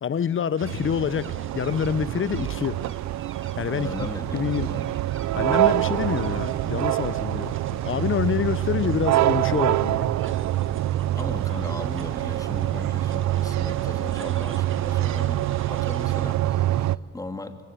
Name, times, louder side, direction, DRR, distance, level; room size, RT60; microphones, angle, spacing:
voice 1, 0.0-2.9 3.6-3.9 4.3-4.7 5.3-10.1, left 8 dB, 40° left, 0.8 m, -27 dB
sound 1, 0.6-16.4, right 6 dB, 45° right, 1.9 m, -44 dB
sound 2, 0.6-17.0, right 14 dB, 65° right, 0.6 m, -25 dB
voice 2, 3.7-4.9 11.1-15.4 15.7-17.6, left 2 dB, 10° left, 2.2 m, -38 dB
24.5 x 24.0 x 9.4 m
cardioid pair, 90°, 30 cm